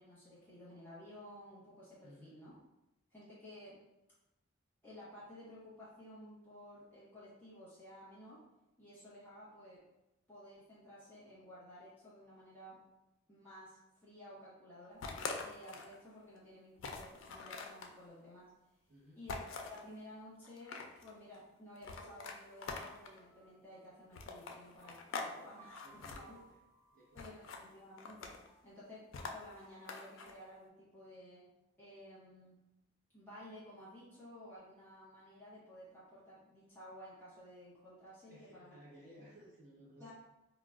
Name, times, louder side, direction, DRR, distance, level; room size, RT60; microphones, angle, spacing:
voice 1, 0.0-2.6 3.1-3.8 4.8-8.4 8.8-9.8 10.3-12.8 13.3-15.0 15.4-18.5 19.1-26.4 27.1-28.3 28.6-29.0 29.3-31.4 31.8-32.6 33.1-38.8 40.0-40.1, left 1 dB, 10° left, -10 dB, 1.1 m, -54 dB
voice 2, 2.0-2.4 18.9-19.2 25.8-26.4 26.9-27.5 38.3-40.1, equal, 45° right, -7 dB, 0.9 m, -58 dB
sound 1, 15.0-15.9 16.4-16.5 16.8-17.9 19.3-19.8 20.4-21.1 21.8-23.2 24.1-25.3 25.6-26.2 27.2-27.6 28.0-28.5 29.1-30.3, left 4 dB, 75° left, 0.4 m, -44 dB
sound 2, 22.0-29.5, right 3 dB, 25° right, 0.5 m, -66 dB
3.9 x 2.1 x 2.4 m, 0.93 s
head